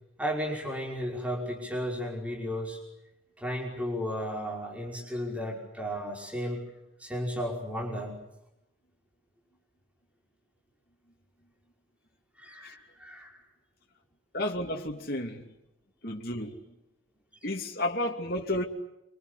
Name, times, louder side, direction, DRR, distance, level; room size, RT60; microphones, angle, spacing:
voice 1, 0.2-2.8 3.4-6.6 7.0-8.2 12.4-13.4, equal, 5° right, 5.4 m, -34 dB
voice 2, 14.3-15.4 16.0-16.6 17.4-18.6, left 1 dB, 50° left, 2.8 m, -32 dB
27.0 x 25.5 x 8.3 m
head